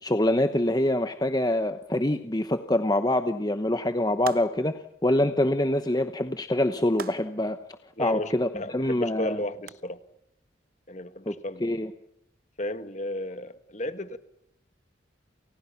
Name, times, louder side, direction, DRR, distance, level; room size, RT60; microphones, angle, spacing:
voice 1, 0.0-7.6 8.0-9.4 11.3-11.4 11.6-11.9, left 1 dB, 20° left, 8 dB, 1.0 m, -25 dB
sound 1, 4.2-4.8 7.0-7.5 9.7-9.8, right 4 dB, 50° right, 1.1 m, -39 dB
voice 2, 8.0-10.0 10.9-11.7 12.6-14.2, left 1 dB, 40° left, 10 dB, 1.8 m, -33 dB
29.5 x 29.5 x 5.9 m, 0.76 s
head